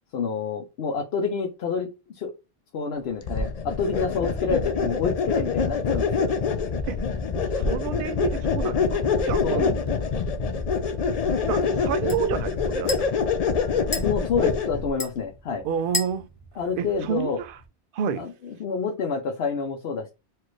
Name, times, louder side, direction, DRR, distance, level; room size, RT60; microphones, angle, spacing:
voice 1, 0.1-1.9 2.1-2.3 2.7-6.3 9.4-9.8 14.0-15.6 16.6-17.4 18.2-20.1, left 5 dB, 70° left, 0.9 m, -28 dB
sound 1, 3.2-14.9, left 5 dB, 50° left, 0.5 m, -25 dB
voice 2, 7.5-9.0 9.3-9.7 11.5-13.1 14.4-14.5 15.6-16.3 16.8-17.6 17.9-18.3, right 8 dB, 60° right, 0.7 m, -29 dB
sound 2, 9.9-17.7, left 3 dB, 35° left, 0.8 m, -38 dB
4.4 x 2.5 x 3.1 m
omnidirectional pair, 1.1 m